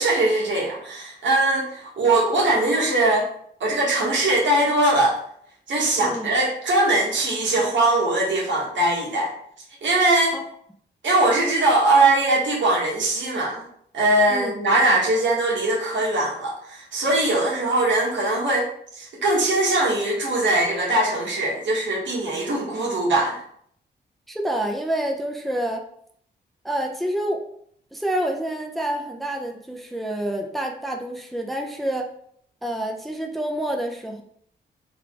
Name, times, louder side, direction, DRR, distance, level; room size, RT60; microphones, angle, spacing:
voice 1, 0.0-3.3 3.6-5.2 5.7-9.3 9.8-10.4 11.0-13.7 13.9-18.7 18.9-23.4, right 2 dB, 75° right, -3 dB, 1.5 m, -21 dB
voice 2, 6.0-6.3 10.3-10.4 14.3-14.5 24.3-25.8 26.6-27.4 27.9-32.1 32.6-34.2, right 1 dB, ahead, 2 dB, 0.6 m, -28 dB
3.4 x 3.2 x 3.7 m, 0.65 s
cardioid pair, 65°, 19 cm